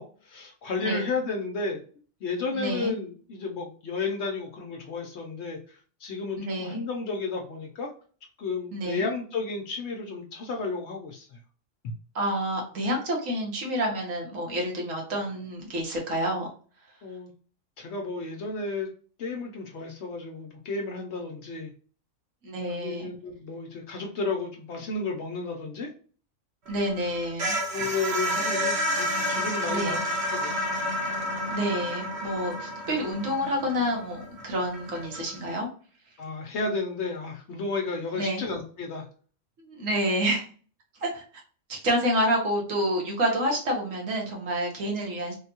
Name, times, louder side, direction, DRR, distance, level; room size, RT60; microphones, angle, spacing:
voice 1, 0.0-1.8 2.2-7.9 8.4-11.4 11.8-11.9 17.0-17.3 17.8-18.9 19.2-21.7 22.7-25.9 27.7-30.6 36.2-39.1, left 3 dB, 65° left, 1 dB, 0.9 m, -32 dB
voice 2, 0.8-1.1 2.5-2.9 6.4-6.8 8.7-9.1 12.1-16.5 22.4-23.1 26.7-27.8 29.7-30.0 31.5-35.7 38.2-38.4 39.6-40.4 41.0-41.2 41.7-45.3, equal, 85° right, 0 dB, 1.5 m, -28 dB
sound 1, 26.7-35.5, equal, 60° right, 1.1 m, -30 dB
3.5 x 2.2 x 2.8 m, 0.41 s
omnidirectional pair, 1.3 m